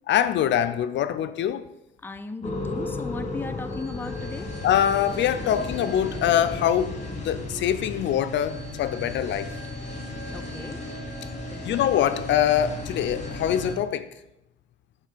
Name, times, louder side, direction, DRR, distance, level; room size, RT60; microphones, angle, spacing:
voice 1, 0.1-1.7 4.6-9.5 11.6-14.1, left 10 dB, 65° left, 0.4 m, -24 dB
voice 2, 2.0-4.5 10.3-10.8 11.5-11.7, left 3 dB, 10° left, 0.4 m, -36 dB
sound 1, 2.4-13.7, left 2 dB, 35° left, 1.3 m, -34 dB
6.3 x 3.7 x 5.0 m
cardioid pair, 90°, 20 cm